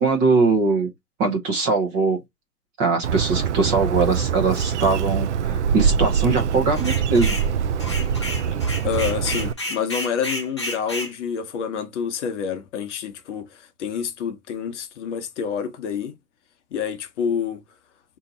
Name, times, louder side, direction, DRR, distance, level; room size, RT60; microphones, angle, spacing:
voice 1, 0.0-0.9 1.2-2.2 2.8-7.4, right 4 dB, 20° right, 0.8 m, -21 dB
Bird, 3.0-9.5, right 7 dB, 50° right, 0.4 m, -23 dB
sound 1, 6.8-7.5 7.8-11.1, left 1 dB, 20° left, 0.3 m, -31 dB
voice 2, 8.8-16.1 16.7-17.6, left 7 dB, 45° left, 0.9 m, -28 dB
4.2 x 2.8 x 3.8 m
hypercardioid pair, 130°, 49 cm